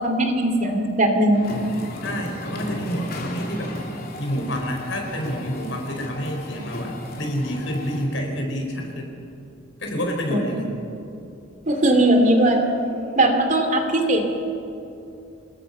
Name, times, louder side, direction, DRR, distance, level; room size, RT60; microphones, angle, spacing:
voice 1, 0.0-1.4 10.3-10.4 11.7-12.6 13.2-14.3, right 1 dB, 40° right, 4 dB, 2.7 m, -19 dB
sound 1, 1.3-8.0, left 1 dB, 50° left, 3.2 m, -34 dB
voice 2, 2.0-3.7 4.2-9.1 9.8-10.8, equal, 75° left, 2 dB, 4.8 m, -28 dB
27.0 x 20.5 x 5.6 m, 2.7 s
head